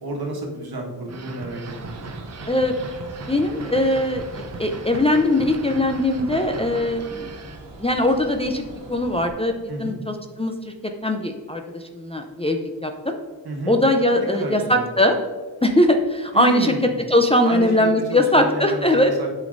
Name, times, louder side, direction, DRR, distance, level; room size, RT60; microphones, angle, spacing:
voice 1, 0.0-2.1 9.7-10.0 13.4-13.8 14.3-14.8 16.3-16.9 17.4-19.3, right 2 dB, 60° right, 0 dB, 1.5 m, -30 dB
sound 1, 1.1-7.6, right 4 dB, 40° right, 0.6 m, -38 dB
sound 2, 1.6-9.3, right 1 dB, 85° right, 1.4 m, -42 dB
voice 2, 3.3-7.3 7.8-8.6 8.9-10.7 11.0-13.2 13.7-15.2 15.6-16.7 17.1-19.1, left 1 dB, 15° left, 3 dB, 0.5 m, -20 dB
8.3 x 5.2 x 2.6 m, 1.4 s
cardioid pair, 50°, 43 cm